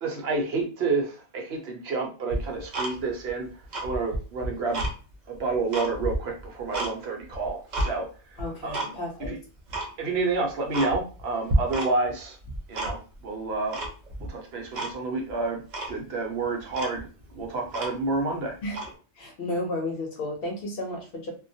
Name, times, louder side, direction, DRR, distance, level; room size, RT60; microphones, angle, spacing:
voice 1, 0.0-3.5 3.8-4.8 5.3-8.1 8.6-8.9 9.3-9.4 10.0-12.4 12.7-13.8 14.2-15.6 15.9-17.1 17.3-18.5, right 3 dB, 70° right, 1 dB, 0.9 m, -29 dB
Tick-tock, 2.3-3.3 3.6-4.9 5.4-6.9 7.3-7.9 8.4-8.9 9.2-9.3 9.7-9.9 10.3-10.4 10.7-11.2 11.5-12.1 12.4-13.2 13.7-14.3 14.7-14.9 15.3-15.4 15.7-16.0 16.4-16.5 16.7-18.2 18.7-18.9, right 1 dB, 50° right, 0.6 m, -30 dB
voice 2, 8.4-9.3 18.6-18.8 19.2-21.3, left 1 dB, 65° left, 2 dB, 0.8 m, -32 dB
2.2 x 2.1 x 2.6 m, 0.35 s
omnidirectional pair, 1.1 m